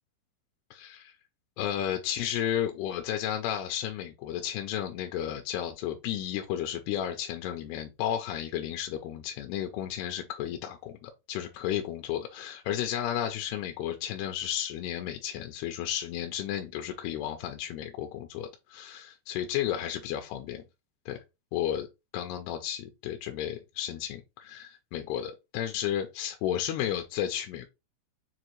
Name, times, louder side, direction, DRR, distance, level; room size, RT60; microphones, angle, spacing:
voice 1, 0.7-1.1 1.6-20.6 21.1-21.2 21.5-21.9 22.1-27.7, left 11 dB, 80° left, 2.3 m, -33 dB
6.7 x 2.4 x 3.0 m
omnidirectional pair, 5.1 m